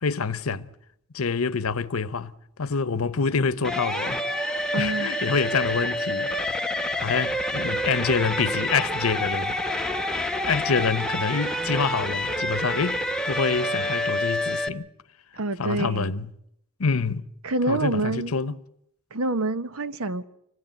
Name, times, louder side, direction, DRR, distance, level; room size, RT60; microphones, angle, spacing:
voice 1, 0.0-0.7 1.1-2.3 2.6-4.2 4.8-6.3 7.0-9.6 10.5-13.0 13.2-14.9 15.6-16.3 16.8-17.2 17.7-18.6, left 5 dB, 85° left, 0.8 m, -26 dB
sound 1, 3.6-14.7, left 1 dB, 5° left, 0.9 m, -28 dB
voice 2, 4.7-5.1 15.4-16.1 17.4-18.5 19.1-20.2, right 2 dB, 80° right, 0.9 m, -27 dB
25.5 x 17.5 x 9.1 m
head